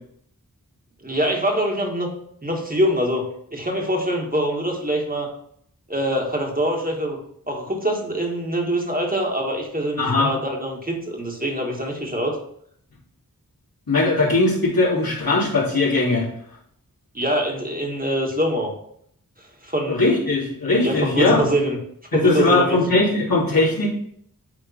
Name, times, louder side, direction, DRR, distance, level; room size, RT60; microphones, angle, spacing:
voice 1, 1.0-2.1 2.4-5.3 5.9-7.2 7.5-12.4 17.1-18.7 19.6-20.0 20.8-21.8 22.1-22.8, equal, 25° right, 0 dB, 1.6 m, -24 dB
voice 2, 10.0-10.3 13.9-16.3 19.9-21.4 22.1-23.9, left 2 dB, 80° left, -8 dB, 2.9 m, -19 dB
9.2 x 3.5 x 4.2 m, 0.67 s
wide cardioid pair, 55°, 35 cm